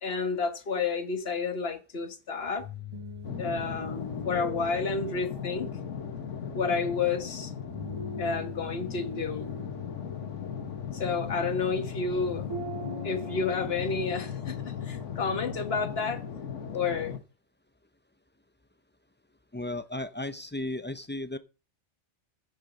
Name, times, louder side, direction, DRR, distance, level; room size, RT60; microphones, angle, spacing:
voice 1, 0.0-2.6 3.4-5.7 6.5-7.5 8.2-9.5 10.9-12.5 13.0-14.6 14.8-16.2 16.7-17.2, left 4 dB, 55° left, 1.7 m, -30 dB
sound 1, 2.5-15.8, left 3 dB, 25° right, 7.2 m, -41 dB
sound 2, 3.2-17.2, left 7 dB, 80° left, 1.5 m, -38 dB
voice 2, 19.5-21.4, left 1 dB, 15° left, 0.4 m, -34 dB
15.0 x 7.5 x 5.2 m
omnidirectional pair, 1.2 m